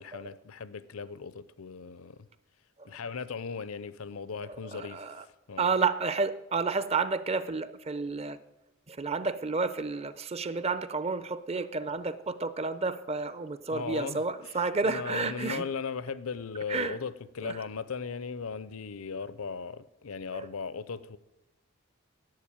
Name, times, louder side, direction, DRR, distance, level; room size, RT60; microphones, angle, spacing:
voice 1, 0.0-2.2 2.8-5.7 13.7-21.2, left 5 dB, 75° left, 0.6 m, -38 dB
voice 2, 4.7-5.2 5.6-8.4 8.9-15.6 16.7-17.0 17.4-17.5 20.3-20.5, right 4 dB, 30° right, 0.6 m, -31 dB
11.5 x 7.6 x 8.9 m
head